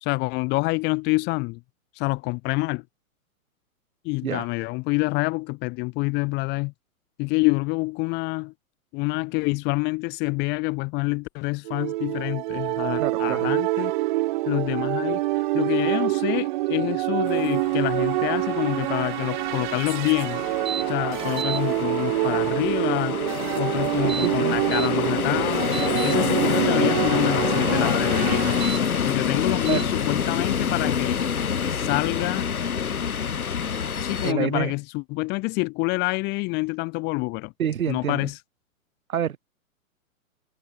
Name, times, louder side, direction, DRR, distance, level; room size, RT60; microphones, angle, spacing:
voice 1, 0.0-1.6 2.0-2.8 4.0-6.7 7.2-8.5 8.9-13.9 14.5-15.2 15.5-20.4 20.9-23.2 23.6-25.7 26.0-28.5 29.0-31.2 31.7-32.5 34.0-37.5 37.9-38.3, left 26 dB, 25° left, 0.8 m, -27 dB
sound 1, 11.7-28.9, right 19 dB, 35° right, 0.6 m, -26 dB
voice 2, 13.0-13.5 24.2-24.6 29.7-29.9 34.2-34.7 37.6-38.3 39.1-39.4, right 9 dB, 75° right, 2.6 m, -27 dB
sound 2, 17.3-34.3, left 7 dB, 85° left, 3.0 m, -27 dB
sound 3, 20.7-20.8 21.2-21.6 23.9-24.9 25.4-26.1 28.5-28.8 29.7-29.8, right 6 dB, 10° right, 2.7 m, -32 dB
hypercardioid pair, 130°, 42 cm